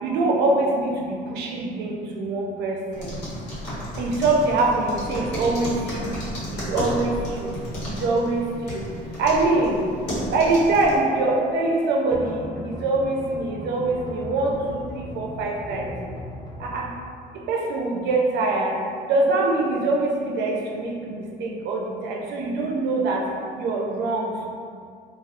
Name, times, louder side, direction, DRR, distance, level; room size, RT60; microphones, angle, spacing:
voice 1, 0.0-3.1 4.0-6.1 6.5-7.5 7.8-8.8 9.2-9.8 10.3-15.9 16.6-16.9 17.5-18.7 19.1-23.3 23.6-24.4, right 2 dB, 80° right, -1 dB, 0.5 m, -24 dB
sound 1, 2.9-11.0, equal, 75° left, 1.2 m, -33 dB
sound 2, 12.1-16.8, left 1 dB, 25° left, 0.5 m, -37 dB
3.4 x 2.4 x 2.3 m, 2.3 s
cardioid pair, 110°, 17 cm